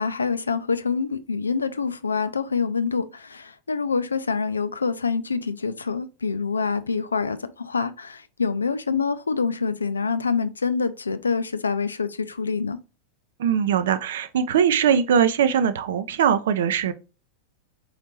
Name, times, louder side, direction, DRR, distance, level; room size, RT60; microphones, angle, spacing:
voice 1, 0.0-12.8, left 5 dB, 75° left, 0.5 m, -26 dB
voice 2, 13.4-16.9, right 8 dB, 60° right, 0.6 m, -21 dB
4.4 x 4.0 x 3.0 m
figure-of-eight pair, 90°, 0 cm